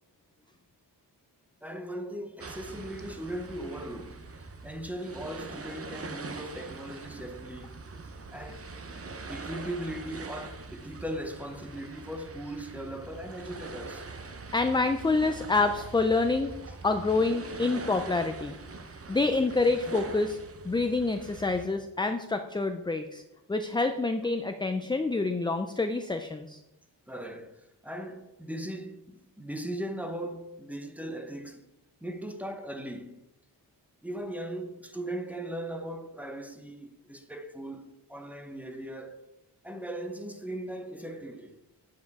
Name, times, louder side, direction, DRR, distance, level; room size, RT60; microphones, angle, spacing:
voice 1, 1.6-4.2 4.6-7.8 8.3-8.7 9.3-14.1 27.1-31.7 32.0-33.2 34.0-39.2 39.6-41.6, right 1 dB, 5° right, 0.8 m, -38 dB
sound 1, 2.4-21.6, right 3 dB, 35° right, 0.8 m, -43 dB
voice 2, 14.5-16.5 16.8-18.6 19.1-20.4 20.6-23.2 23.5-26.6, left 3 dB, 10° left, 0.4 m, -27 dB
9.5 x 7.6 x 4.7 m
wide cardioid pair, 160°, 42 cm